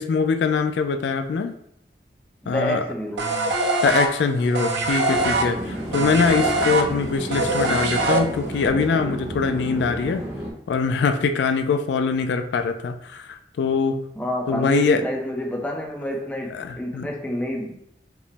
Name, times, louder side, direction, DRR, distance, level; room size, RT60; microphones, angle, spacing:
voice 1, 0.0-1.5 2.5-2.8 3.8-10.2 10.7-14.0 14.5-15.0 16.5-17.1, left 5 dB, 85° left, 7 dB, 0.3 m, -23 dB
voice 2, 2.4-3.4 14.2-17.8, equal, 10° left, 0 dB, 0.4 m, -28 dB
sound 1, 3.2-8.7, right 2 dB, 80° right, 0.5 m, -23 dB
Chatter / Fixed-wing aircraft airplane, 5.1-10.5, right 1 dB, 20° right, 0.8 m, -32 dB
4.9 x 2.0 x 3.3 m, 0.74 s
head